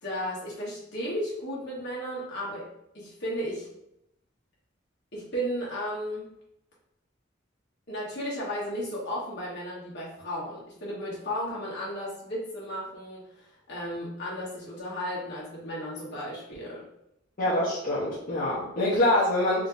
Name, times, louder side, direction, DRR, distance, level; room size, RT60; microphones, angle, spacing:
voice 1, 0.0-2.7 2.9-3.7 5.1-6.3 7.9-16.9, equal, 60° left, -6 dB, 1.3 m, -34 dB
voice 2, 17.4-19.7, left 1 dB, 40° left, -9 dB, 0.8 m, -25 dB
3.6 x 2.8 x 2.5 m, 0.79 s
head